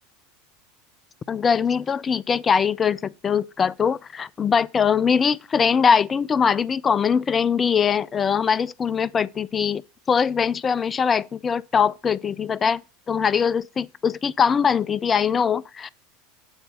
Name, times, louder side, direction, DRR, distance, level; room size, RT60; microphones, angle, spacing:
voice 1, 1.3-9.8 10.1-12.8 13.1-15.9, left 6 dB, 25° left, 0.4 m, -22 dB
8.8 x 3.9 x 6.4 m
figure-of-eight pair, 80°, 0 cm